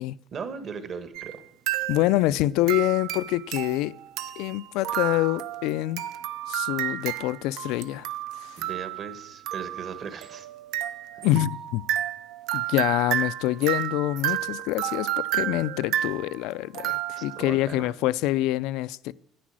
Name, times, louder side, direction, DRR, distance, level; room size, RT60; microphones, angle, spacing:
voice 1, 0.3-1.4 8.6-10.5 11.1-11.3 17.1-17.9, right 5 dB, 40° right, 1.2 m, -38 dB
sound 1, 1.1-1.4 1.7-2.3 2.7-17.6, right 13 dB, 70° right, 0.6 m, -31 dB
voice 2, 1.9-3.9 4.4-6.0 6.5-8.1 8.4-8.6 11.2-11.8 12.5-19.1, left 16 dB, 80° left, 0.3 m, -26 dB
10.0 x 9.4 x 6.2 m
cardioid pair, 145°, 0 cm